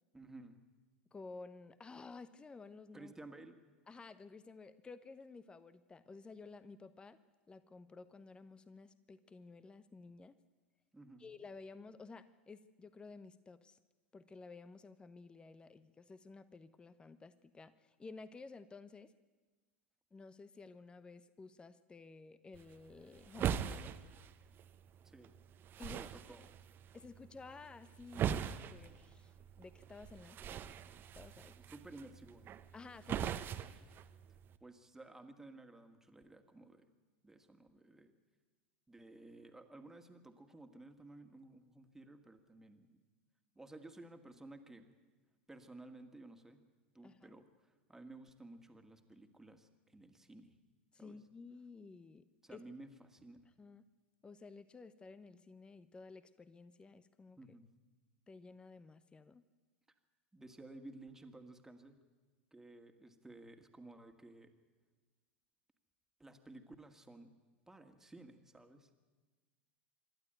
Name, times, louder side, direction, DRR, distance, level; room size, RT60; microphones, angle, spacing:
voice 1, 0.1-0.6 2.9-3.6 10.9-11.3 25.0-25.3 25.8-26.4 31.7-32.6 34.6-36.9 37.2-38.1 38.9-43.0 43.6-44.9 45.5-46.6 46.9-50.6 51.0-51.2 52.4-53.4 57.4-57.7 60.3-62.0 62.5-64.5 66.2-67.3 67.7-68.9, right 2 dB, 5° right, 6 dB, 2.1 m, -55 dB
voice 2, 1.1-3.1 3.9-7.2 7.5-10.4 11.2-13.8 14.1-19.1 20.1-23.9 25.8-26.0 26.4-26.5 26.9-29.3 29.6-30.7 31.1-31.6 32.7-33.7 47.0-47.3 50.9-52.6 53.6-53.8 54.2-57.6 58.3-59.4, left 4 dB, 15° left, 14 dB, 0.8 m, -53 dB
sound 1, 22.5-34.6, right 9 dB, 35° right, 1.0 m, -42 dB
26.5 x 12.0 x 9.3 m, 1.3 s
figure-of-eight pair, 85°, 6 cm